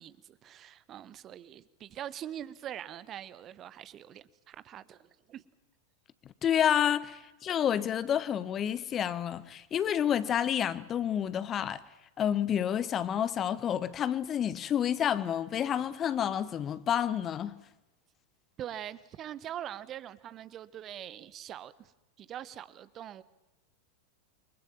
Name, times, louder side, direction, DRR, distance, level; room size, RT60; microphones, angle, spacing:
voice 1, 0.0-5.4 18.6-21.9 22.2-23.2, right 11 dB, 30° right, 1.1 m, -43 dB
voice 2, 6.4-11.8 12.2-17.6, left 9 dB, 25° left, 1.1 m, -29 dB
29.0 x 24.0 x 7.2 m
figure-of-eight pair, 90°, 0 cm